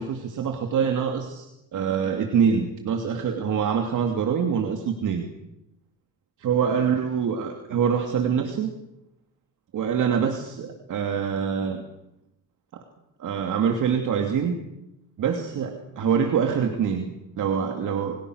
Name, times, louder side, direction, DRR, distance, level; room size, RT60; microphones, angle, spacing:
voice 1, 0.0-5.3 6.4-8.7 9.7-11.8 12.7-12.8 13.2-14.6 15.2-18.2, right 7 dB, 60° right, 4 dB, 2.8 m, -25 dB
29.0 x 23.0 x 6.6 m, 0.86 s
cardioid pair, 120°, 34 cm